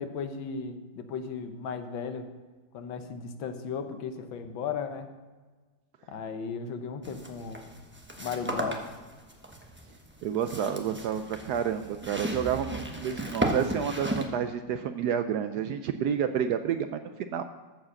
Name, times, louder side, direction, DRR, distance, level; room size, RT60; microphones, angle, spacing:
voice 1, 0.0-2.3 2.7-5.1 6.1-7.6 8.2-8.9, left 6 dB, 85° left, 8 dB, 1.7 m, -36 dB
sound 1, 7.0-14.3, right 1 dB, 15° right, 0.5 m, -35 dB
voice 2, 10.2-17.4, right 8 dB, 75° right, 9 dB, 1.0 m, -30 dB
14.5 x 4.8 x 6.4 m, 1.3 s
omnidirectional pair, 2.1 m